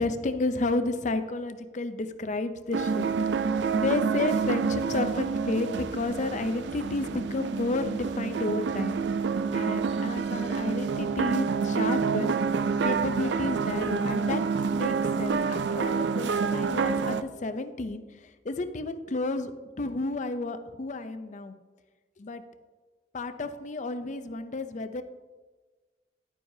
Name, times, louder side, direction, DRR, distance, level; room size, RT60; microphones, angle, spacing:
voice 1, 0.0-3.1 3.7-9.0 9.5-12.4 12.8-14.4 14.7-18.0 18.4-21.5 22.2-22.4 23.1-25.0, left 2 dB, 45° left, 10 dB, 0.5 m, -31 dB
sound 1, 2.7-17.2, right 5 dB, 70° right, 0.4 m, -28 dB
10.5 x 9.3 x 2.7 m, 1.3 s
head